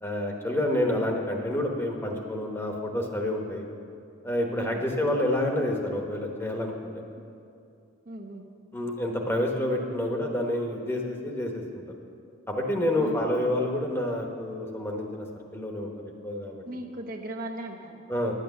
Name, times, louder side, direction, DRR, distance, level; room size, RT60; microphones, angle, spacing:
voice 1, 0.0-3.6 4.2-6.9 8.7-12.0 12.5-15.2 15.5-15.9 16.2-16.6 18.1-18.3, left 1 dB, 10° left, 1 dB, 1.0 m, -28 dB
voice 2, 8.1-8.5 13.0-13.3 16.6-18.0, right 1 dB, 45° right, 3 dB, 0.8 m, -38 dB
10.0 x 9.1 x 7.0 m, 2.5 s
head